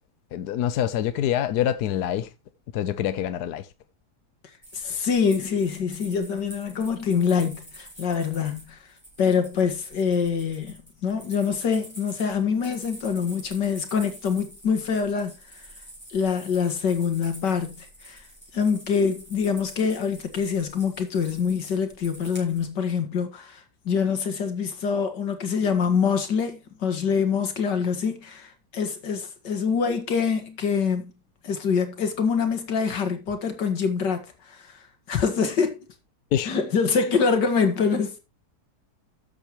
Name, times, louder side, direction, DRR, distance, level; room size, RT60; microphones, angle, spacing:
voice 1, 0.3-2.3 2.7-3.7 36.3-36.5 37.0-37.1, left 10 dB, 70° left, 1.2 m, -26 dB
sound 1, 4.6-22.6, right 1 dB, 5° left, 6.5 m, -47 dB
voice 2, 4.7-8.8 9.2-15.3 16.1-18.2 18.5-31.1 31.4-34.6 35.1-35.8 36.5-38.2, left 6 dB, 85° left, 2.5 m, -25 dB
13.0 x 7.9 x 3.0 m
omnidirectional pair, 1.8 m